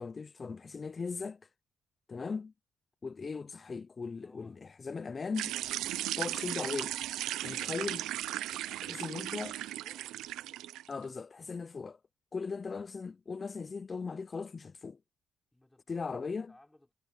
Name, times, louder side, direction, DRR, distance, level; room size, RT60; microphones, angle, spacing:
voice 1, 0.0-1.4 2.1-2.5 3.0-5.5 6.2-7.0 7.4-8.1 8.8-9.5 10.9-12.0 12.3-15.0 15.9-16.5, left 4 dB, 35° left, 0.5 m, -38 dB
voice 2, 4.0-4.6 8.7-10.1 15.5-16.9, left 1 dB, 10° left, 5.2 m, -62 dB
sound 1, 5.4-10.9, right 14 dB, 90° right, 0.6 m, -36 dB
cardioid pair, 90°, 0 cm